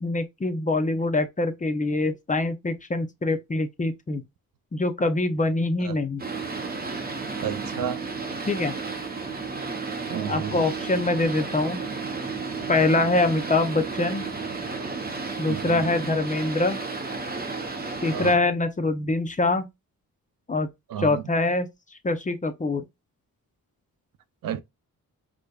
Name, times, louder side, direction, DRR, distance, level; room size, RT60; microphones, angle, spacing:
voice 1, 0.0-4.2 4.7-6.2 8.5-8.7 10.3-11.8 12.7-14.2 15.4-16.8 18.0-19.7 20.5-20.7 21.0-21.7 22.0-22.8, left 2 dB, 20° left, 0.5 m, -24 dB
Boat Water vehicle, 6.2-18.4, right 4 dB, 25° right, 0.8 m, -32 dB
voice 2, 7.4-8.0 10.1-10.6 15.5-15.8 18.1-18.4 20.9-21.2 24.4-24.6, right 9 dB, 70° right, 0.5 m, -31 dB
5.0 x 2.2 x 2.3 m
cardioid pair, 90°, 35 cm